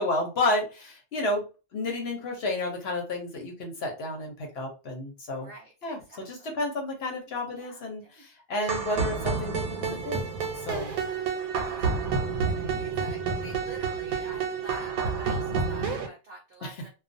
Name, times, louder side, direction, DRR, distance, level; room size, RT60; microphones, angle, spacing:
voice 1, 0.0-1.4 1.7-5.5 5.8-10.2 10.6-10.9 16.6-16.9, left 2 dB, 55° left, 1 dB, 0.9 m, -31 dB
voice 2, 5.4-6.5 7.5-8.2 10.7-11.3 11.6-16.9, right 2 dB, 55° right, 0 dB, 0.6 m, -48 dB
sound 1, 8.6-16.1, right 5 dB, 90° right, 1.1 m, -29 dB
2.4 x 2.3 x 2.6 m, 0.31 s
omnidirectional pair, 1.5 m